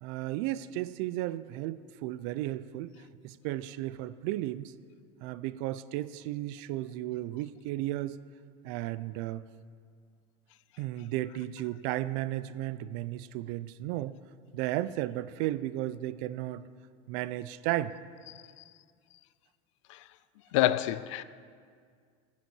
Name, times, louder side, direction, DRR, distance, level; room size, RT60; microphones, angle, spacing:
voice 1, 0.0-4.7 5.2-8.2 8.6-9.4 10.8-14.2 14.5-16.7 17.1-17.9, right 15 dB, 50° right, 0.4 m, -34 dB
voice 2, 20.5-21.2, left 15 dB, 85° left, 0.5 m, -26 dB
9.8 x 7.4 x 7.8 m
cardioid pair, 170°, 16 cm